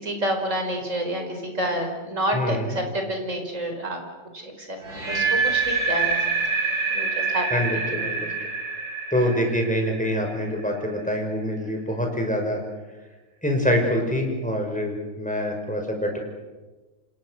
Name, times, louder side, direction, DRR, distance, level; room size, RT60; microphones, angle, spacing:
voice 1, 0.0-4.0 4.3-4.8 5.1-6.2 6.9-7.5 7.7-8.1, right 1 dB, 40° right, 4 dB, 5.3 m, -28 dB
voice 2, 2.3-2.8 7.5-8.3 9.1-12.6 13.4-16.2, equal, 5° left, 2 dB, 5.6 m, -25 dB
sound 1, 4.8-10.8, right 4 dB, 60° right, 7.9 m, -26 dB
29.0 x 26.5 x 6.5 m, 1.2 s
omnidirectional pair, 1.9 m